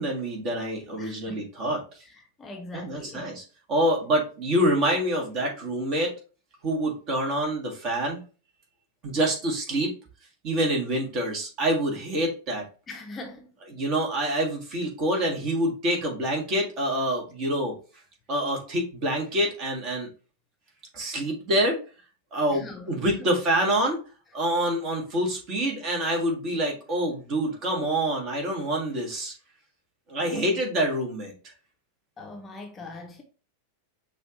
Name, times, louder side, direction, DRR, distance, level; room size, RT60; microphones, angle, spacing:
voice 1, 0.0-1.8 2.7-3.4 3.7-6.1 6.6-8.2 9.0-9.9 10.4-12.6 13.7-17.8 18.3-20.1 20.9-21.8 22.3-24.0 24.3-29.3 30.1-31.3, right 1 dB, 35° right, 1.7 m, -26 dB
voice 2, 1.0-1.5 2.0-3.3 12.9-13.5 14.7-14.8 22.5-23.3 30.3-30.6 32.2-33.2, left 2 dB, 20° left, 0.8 m, -42 dB
6.1 x 2.6 x 3.0 m
figure-of-eight pair, 90°, 0 cm